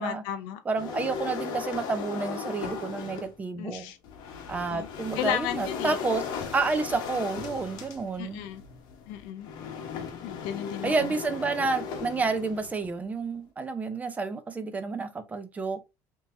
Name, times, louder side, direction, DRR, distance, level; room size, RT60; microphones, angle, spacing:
voice 1, 0.0-0.6 3.6-4.0 4.7-4.9 5.2-6.0 8.2-8.6 9.1-9.5 10.2-11.1, left 10 dB, 80° left, 0.5 m, -34 dB
voice 2, 0.7-3.9 4.5-6.2 6.5-8.4 10.8-15.8, right 4 dB, 20° right, 0.5 m, -30 dB
sound 1, 0.8-3.4 4.0-12.9, left 6 dB, 65° left, 0.9 m, -37 dB
3.6 x 2.8 x 2.5 m
cardioid pair, 120°, 8 cm